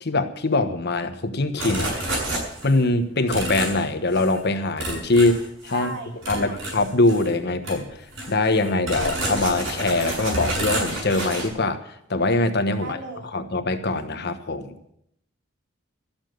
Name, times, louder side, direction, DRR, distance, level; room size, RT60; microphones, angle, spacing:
voice 1, 0.0-1.9 2.6-5.9 6.3-8.0 8.3-13.0 13.3-14.8, left 2 dB, 60° left, 8 dB, 1.2 m, -23 dB
sound 1, 1.6-2.8 3.3-3.8 4.1-4.4 4.8-5.9 6.2-7.3 7.6-7.8 8.1-11.5, right 1 dB, 85° right, 7.1 m, -29 dB
voice 2, 5.7-6.6 12.8-13.4, right 3 dB, 65° right, 2 dB, 2.9 m, -36 dB
13.5 x 7.3 x 9.3 m, 0.74 s
head